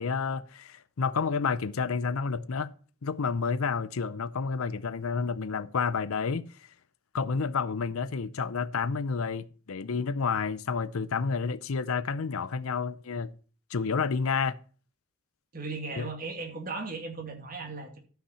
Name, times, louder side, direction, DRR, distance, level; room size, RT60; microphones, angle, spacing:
voice 1, 0.0-2.7 3.0-6.4 7.1-13.3 13.7-14.6 16.0-16.1, left 5 dB, 80° left, 0.6 m, -30 dB
voice 2, 15.5-18.0, right 3 dB, 40° right, 2.3 m, -37 dB
12.5 x 5.8 x 5.7 m
head